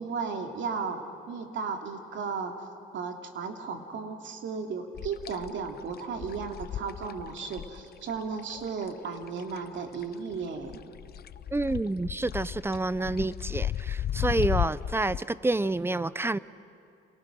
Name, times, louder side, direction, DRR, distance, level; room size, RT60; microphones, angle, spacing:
voice 1, 0.0-2.6 2.9-10.8, right 5 dB, 70° right, 4 dB, 2.7 m, -35 dB
sound 1, 5.0-9.8 10.0-15.2, left 10 dB, 50° left, 0.6 m, -34 dB
voice 2, 11.5-16.4, right 2 dB, 10° right, 17 dB, 0.6 m, -28 dB
29.0 x 28.5 x 6.3 m, 2.5 s
cardioid pair, 90°, 20 cm